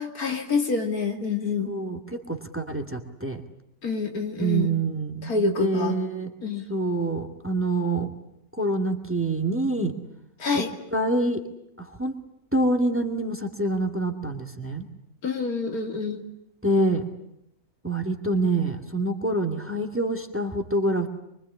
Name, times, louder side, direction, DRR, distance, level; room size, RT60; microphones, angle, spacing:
voice 1, 0.0-1.7 3.8-4.7 5.2-5.9 6.4-6.6 10.4-10.7 15.2-16.2, left 4 dB, 75° left, 5 dB, 3.0 m, -27 dB
voice 2, 1.6-3.4 4.4-6.3 6.7-8.1 8.5-9.9 10.5-10.6 10.9-11.4 11.8-12.2 12.5-14.9 16.6-17.0 17.8-21.1, right 2 dB, 10° right, 5 dB, 2.2 m, -26 dB
25.0 x 24.0 x 9.8 m, 0.79 s
omnidirectional pair, 1.6 m